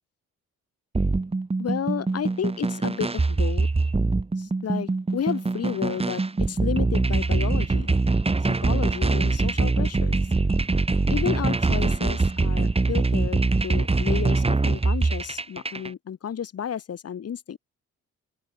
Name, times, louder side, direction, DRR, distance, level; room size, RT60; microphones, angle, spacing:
sound 1, 0.9-15.9, right 3 dB, 20° right, 2.6 m, -23 dB
voice 1, 1.6-3.7 4.4-6.2 6.5-8.0 8.4-10.2 11.1-17.6, left 8 dB, 55° left, 3.3 m, -32 dB
open air
cardioid pair, 90°, 30 cm